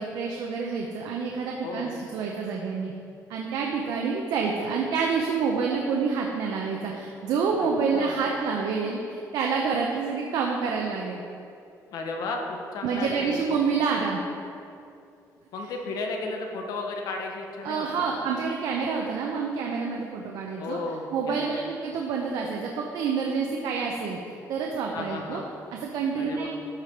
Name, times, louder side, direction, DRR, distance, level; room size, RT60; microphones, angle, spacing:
voice 1, 0.0-2.9 3.3-11.2 12.8-14.2 17.6-20.8 21.1-24.2 24.5-25.4 25.7-26.5, right 5 dB, 80° right, 0 dB, 0.8 m, -28 dB
voice 2, 1.6-1.9 7.6-8.2 11.9-13.6 15.5-18.1 20.6-21.6 24.9-25.5 26.2-26.5, left 3 dB, 70° left, 2 dB, 1.0 m, -34 dB
12.5 x 4.9 x 4.5 m, 2.5 s
cardioid pair, 170°, 7 cm